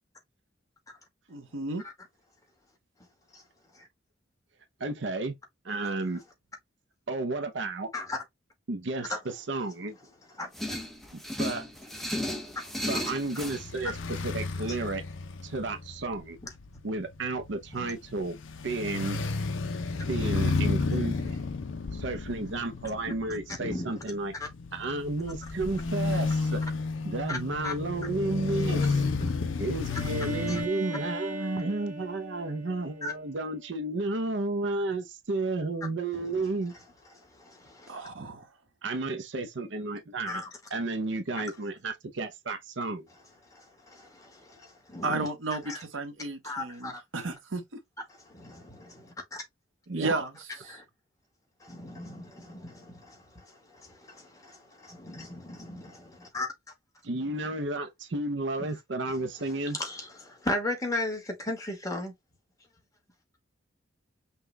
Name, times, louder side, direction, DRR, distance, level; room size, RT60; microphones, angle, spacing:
voice 1, 1.3-1.8 37.9-38.5 45.0-47.6 49.9-50.4 50.7-50.8, right 3 dB, 85° right, 1.1 m, -33 dB
voice 2, 4.8-5.4 5.6-6.2 7.1-7.9 8.7-10.0 11.1-11.7 12.9-15.0 15.4-16.4 16.8-18.4 18.6-19.2 20.1-21.4 21.9-24.3 24.7-26.6 27.0-29.0 29.6-36.7 38.8-40.4 40.7-43.1 49.9-50.2 57.0-59.8, right 2 dB, 65° right, 0.6 m, -32 dB
sound 1, 10.5-13.6, left 1 dB, ahead, 0.8 m, -34 dB
sound 2, 13.4-30.7, left 3 dB, 75° left, 0.6 m, -32 dB
voice 3, 20.7-21.1 23.6-23.9 24.4-24.5 26.0-26.3 27.3-27.4 27.6-27.7 29.2-29.3 30.5-30.6 33.0-33.1 36.2-36.3 37.4-38.0 40.2-40.5 43.5-45.3 45.6-45.8 46.4-47.0 48.3-49.4 50.7-50.8 51.6-56.5 59.7-62.1, left 2 dB, 15° left, 1.4 m, -37 dB
Bowed string instrument, 29.9-33.6, right 1 dB, 40° right, 1.1 m, -39 dB
5.7 x 2.3 x 3.3 m
head